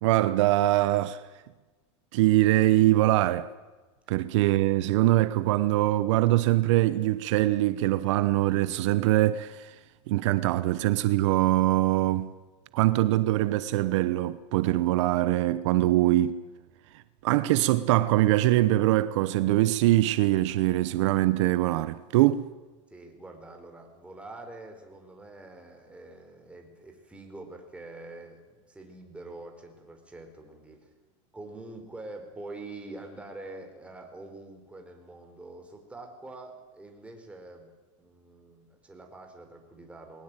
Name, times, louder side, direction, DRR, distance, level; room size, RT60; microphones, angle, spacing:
voice 1, 0.0-1.2 2.1-3.5 4.1-9.7 10.1-12.3 12.7-16.4 16.9-22.5, right 16 dB, 70° right, 1.0 m, -23 dB
voice 2, 22.9-30.9 31.3-37.7 38.0-40.2, right 2 dB, 5° right, 4.4 m, -45 dB
21.0 x 19.0 x 9.1 m
supercardioid pair, 140°, 16 cm